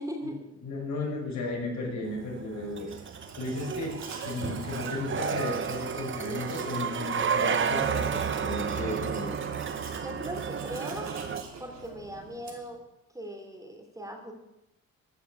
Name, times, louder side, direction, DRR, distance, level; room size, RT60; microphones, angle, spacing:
voice 1, 0.0-0.5 10.0-11.1 11.6-12.8 13.1-14.3, equal, 10° right, 2 dB, 3.0 m, -39 dB
voice 2, 0.6-2.9 3.4-4.0 4.2-9.4, left 2 dB, 70° left, -2 dB, 5.8 m, -34 dB
sound 1, 2.1-11.4, right 7 dB, 40° right, 1.0 m, -32 dB
Domestic sounds home sounds, 2.7-12.8, right 4 dB, 60° right, 2.8 m, -46 dB
14.0 x 6.7 x 8.8 m, 0.91 s
cardioid pair, 90°, 30 cm